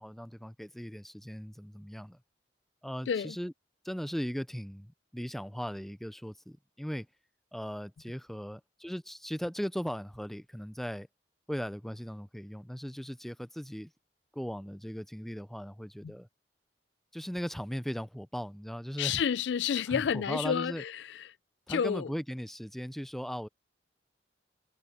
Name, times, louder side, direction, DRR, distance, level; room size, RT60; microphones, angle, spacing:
voice 1, 0.0-2.2 2.8-3.5 3.8-7.1 7.5-11.1 11.5-13.9 14.3-16.3 17.1-19.2 19.9-20.8 21.7-23.5, equal, ahead, 0.5 m, -38 dB
voice 2, 19.0-21.2 21.7-22.1, left 7 dB, 75° left, 0.4 m, -30 dB
head